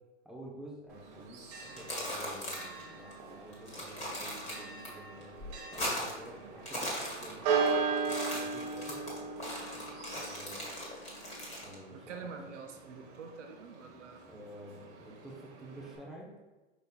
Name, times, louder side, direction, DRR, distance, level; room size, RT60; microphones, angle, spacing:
voice 1, 0.2-1.4 1.7-5.4 5.7-10.6 11.6-12.0 14.3-16.3, right 1 dB, ahead, -4 dB, 0.4 m, -50 dB
Church bell, 0.9-16.0, right 5 dB, 35° right, 0.8 m, -38 dB
sound 1, 1.6-2.8 3.1-3.2 3.5-4.9 5.2-6.3 6.5-7.7 8.0-11.7, left 1 dB, 20° left, 1.3 m, -39 dB
voice 2, 11.9-14.3, right 5 dB, 75° right, 4 dB, 0.7 m, -46 dB
5.1 x 4.1 x 2.2 m, 1.2 s
hypercardioid pair, 130°, 37 cm